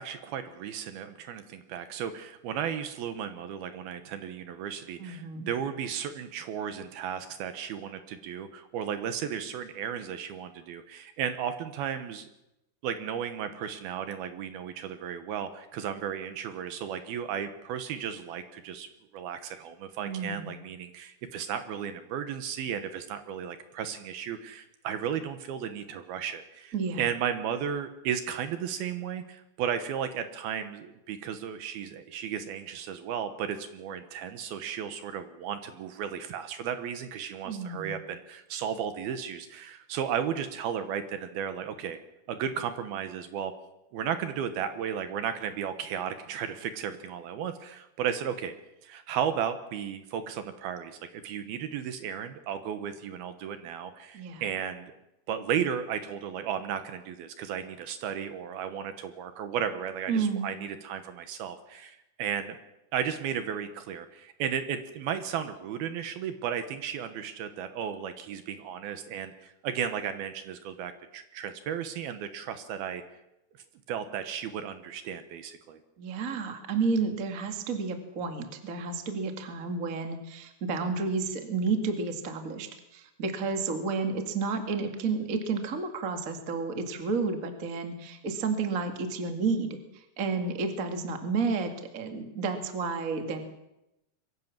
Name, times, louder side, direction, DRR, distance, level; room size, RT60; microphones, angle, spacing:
voice 1, 0.0-12.3 12.8-18.9 19.1-42.0 42.3-43.5 43.9-48.5 48.8-54.8 55.3-62.6 62.9-73.0 73.9-75.8, right 8 dB, 70° right, 9 dB, 2.7 m, -34 dB
voice 2, 5.0-5.5 20.0-20.5 26.7-27.1 37.4-37.9 54.1-54.4 60.1-60.5 76.0-93.4, right 4 dB, 35° right, 5 dB, 1.3 m, -31 dB
23.0 x 16.0 x 7.3 m, 0.90 s
omnidirectional pair, 5.0 m